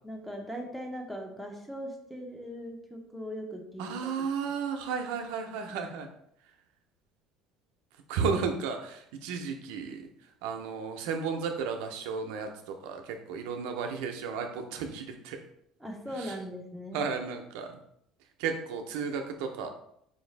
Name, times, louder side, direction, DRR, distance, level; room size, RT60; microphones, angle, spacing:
voice 1, 0.0-4.3 15.8-17.1, equal, ahead, 1 dB, 0.8 m, -40 dB
voice 2, 3.8-6.1 8.1-10.0 10.4-15.4 16.2-16.3 16.9-17.7 18.4-19.7, right 5 dB, 85° right, 5 dB, 0.5 m, -33 dB
4.7 x 2.6 x 3.2 m, 0.73 s
cardioid pair, 115°, 0 cm